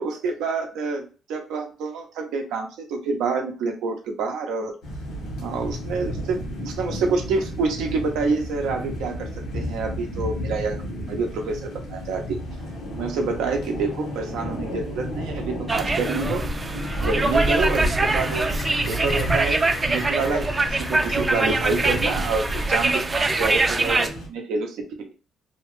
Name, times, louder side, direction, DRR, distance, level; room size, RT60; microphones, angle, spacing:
voice 1, 0.0-4.7 5.4-9.3 9.5-12.4 12.9-16.4 17.0-18.5 18.9-25.1, right 4 dB, 90° right, 3 dB, 0.6 m, -27 dB
sound 1, 4.8-24.3, equal, 90° left, 1.1 m, -32 dB
sound 2, 15.7-24.1, right 2 dB, 25° right, 0.3 m, -23 dB
Bird, 16.6-17.1 17.4-21.1 21.4-22.2, left 6 dB, 70° left, 0.4 m, -41 dB
2.8 x 2.2 x 3.0 m, 0.36 s
cardioid pair, 90°, 0 cm